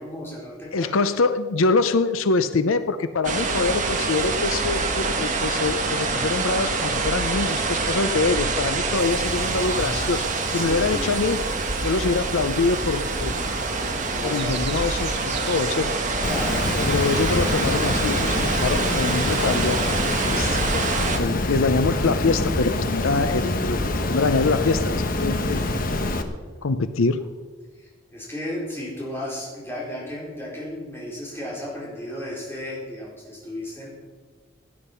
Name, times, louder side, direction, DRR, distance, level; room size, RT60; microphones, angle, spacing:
voice 1, 0.0-0.9 10.5-11.1 14.1-14.7 16.3-16.6 27.8-33.9, left 1 dB, 10° left, -5 dB, 4.5 m, -34 dB
voice 2, 0.7-11.4 11.8-13.3 14.2-15.9 16.8-19.8 20.2-23.8 24.1-25.6 26.6-27.2, left 3 dB, 85° left, 11 dB, 0.6 m, -24 dB
sound 1, 3.2-21.2, right 3 dB, 40° right, 1.5 m, -26 dB
sound 2, 8.9-16.9, right 5 dB, 55° right, 0.9 m, -38 dB
Water, 16.2-26.2, left 2 dB, 45° left, 1.1 m, -25 dB
17.0 x 10.0 x 5.7 m, 1.4 s
head